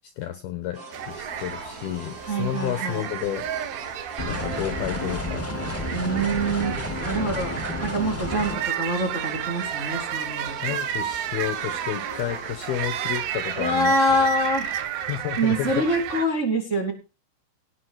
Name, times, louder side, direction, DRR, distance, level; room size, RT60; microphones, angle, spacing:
voice 1, 0.2-0.8 1.1-3.5 3.8-5.5 7.2-7.4 10.6-13.9 15.1-16.2, left 12 dB, 70° left, 10 dB, 2.4 m, -31 dB
sound 1, 0.7-13.1, right 3 dB, 55° right, 1.0 m, -41 dB
sound 2, 0.9-16.3, right 10 dB, 75° right, 2.2 m, -32 dB
voice 2, 2.2-3.1 5.9-7.5 7.8-10.5 13.6-14.7 15.4-16.9, right 1 dB, 20° right, 6 dB, 1.9 m, -25 dB
sound 3, 4.2-8.6, left 1 dB, 10° left, 0.8 m, -31 dB
18.0 x 6.9 x 6.3 m, 0.32 s
omnidirectional pair, 5.8 m